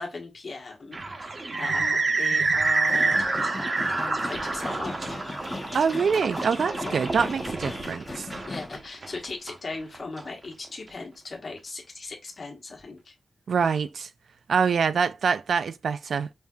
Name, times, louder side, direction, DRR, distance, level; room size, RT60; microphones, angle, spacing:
voice 1, 0.0-3.3 3.9-5.2 6.8-7.0 8.5-13.1, left 3 dB, 50° left, 1.2 m, -38 dB
sound 1, 0.9-10.2, right 3 dB, 40° right, 0.7 m, -28 dB
sound 2, 2.8-8.8, left 2 dB, 25° left, 0.8 m, -38 dB
voice 2, 5.7-8.3 13.5-14.1 14.5-16.3, right 6 dB, 80° right, 0.4 m, -25 dB
5.2 x 2.7 x 2.3 m
wide cardioid pair, 150°, 0 cm